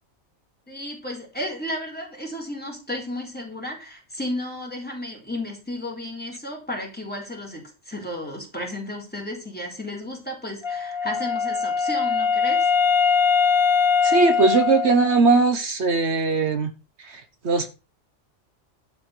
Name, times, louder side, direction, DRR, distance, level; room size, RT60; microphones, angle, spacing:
voice 1, 0.7-12.7, left 1 dB, 10° left, 4.0 m, -33 dB
Wind instrument woodwind instrument, 10.6-15.4, left 6 dB, 30° left, 0.7 m, -21 dB
voice 2, 14.0-16.7 17.0-17.7, right 4 dB, 70° right, 1.4 m, -20 dB
12.0 x 5.7 x 6.7 m
omnidirectional pair, 1.2 m